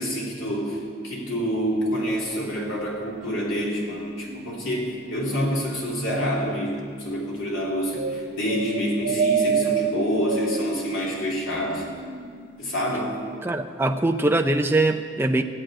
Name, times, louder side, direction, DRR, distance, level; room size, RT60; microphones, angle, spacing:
voice 1, 0.0-11.8 12.6-13.2, equal, 80° left, -3 dB, 3.3 m, -27 dB
sound 1, 1.3-12.7 13.0-13.4, right 6 dB, 55° right, 0.8 m, -32 dB
voice 2, 13.4-15.4, right 2 dB, 10° right, 5 dB, 0.5 m, -22 dB
14.0 x 7.7 x 9.9 m, 2.1 s
head